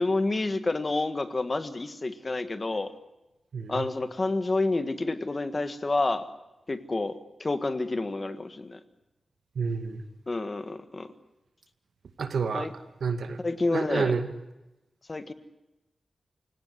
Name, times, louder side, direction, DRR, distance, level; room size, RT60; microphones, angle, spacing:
voice 1, 0.0-2.9 3.7-6.2 6.7-8.8 10.3-11.1 12.5-12.7 13.4-14.1 15.1-15.3, left 2 dB, 30° left, 11 dB, 1.6 m, -29 dB
voice 2, 3.5-3.9 9.6-10.0 12.2-12.7 13.0-13.4 13.7-14.2, right 5 dB, 80° right, 10 dB, 2.1 m, -29 dB
28.5 x 17.5 x 9.7 m, 0.98 s
wide cardioid pair, 155°, 0 cm